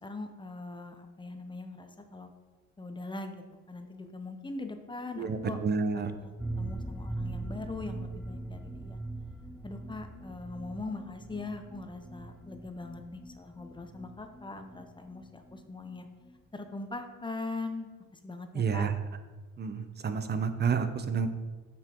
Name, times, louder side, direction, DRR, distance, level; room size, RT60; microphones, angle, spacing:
voice 1, 0.0-2.3 2.8-5.6 6.2-6.3 6.6-9.0 9.6-16.1 16.5-17.9 18.2-18.9, left 3 dB, 15° left, 6 dB, 0.7 m, -41 dB
voice 2, 5.2-6.1 18.5-18.9 19.6-21.3, right 5 dB, 35° right, 10 dB, 0.6 m, -29 dB
sound 1, 6.4-16.0 16.3-16.4 16.6-16.7, right 2 dB, ahead, 0.3 m, -41 dB
8.1 x 5.9 x 3.0 m, 1.3 s
cardioid pair, 90°, 30 cm